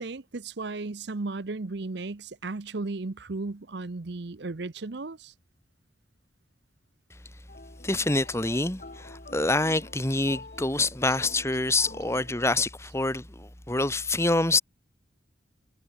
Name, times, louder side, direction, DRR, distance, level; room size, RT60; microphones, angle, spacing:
voice 1, 0.0-5.3, right 3 dB, 60° right, 0.8 m, -35 dB
sound 1, 7.5-12.5, left 3 dB, 40° left, 1.5 m, -46 dB
voice 2, 7.8-14.6, left 2 dB, 15° left, 1.4 m, -26 dB
head